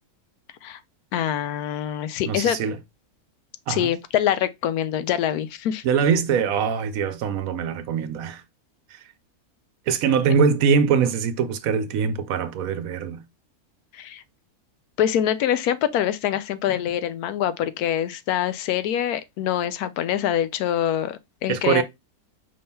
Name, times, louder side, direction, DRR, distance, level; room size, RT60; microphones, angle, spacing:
voice 1, 1.1-2.6 3.7-5.8 13.9-14.2 15.0-21.8, left 10 dB, 80° left, 1.1 m, -25 dB
voice 2, 2.3-2.8 3.7-3.9 5.8-8.4 8.9-9.0 9.9-13.2 21.5-21.8, right 6 dB, 70° right, 1.0 m, -22 dB
5.3 x 2.8 x 3.5 m
omnidirectional pair, 1.6 m